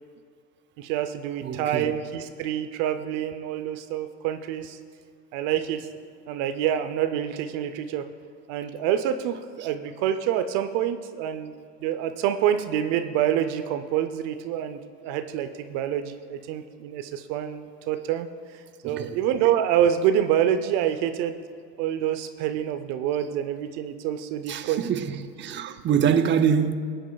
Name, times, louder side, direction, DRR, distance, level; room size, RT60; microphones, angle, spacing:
voice 1, 0.8-4.8 5.3-5.9 6.3-8.1 8.5-11.5 11.8-18.3 18.8-21.4 21.8-24.9, right 10 dB, 70° right, 0.7 m, -27 dB
voice 2, 1.4-1.9 18.8-19.1 24.5-26.7, right 7 dB, 35° right, 0.7 m, -24 dB
20.5 x 8.8 x 2.3 m
supercardioid pair, 95°, 33 cm